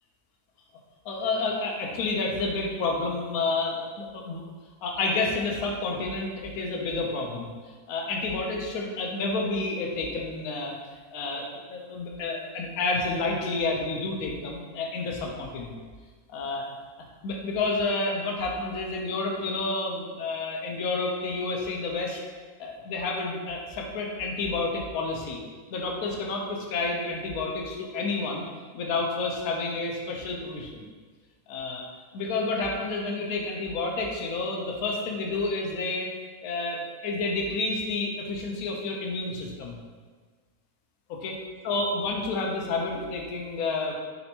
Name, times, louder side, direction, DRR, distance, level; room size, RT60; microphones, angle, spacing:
voice 1, 1.0-4.4 4.8-7.5 7.9-10.8 11.1-15.8 16.3-16.7 17.2-22.2 22.6-25.4 25.7-28.5 28.7-30.9 31.5-31.8 32.1-36.1 36.4-39.8 41.1-41.4 41.6-43.9, left 3 dB, 75° left, 0 dB, 1.1 m, -30 dB
4.3 x 4.3 x 2.8 m, 1.5 s
omnidirectional pair, 1.6 m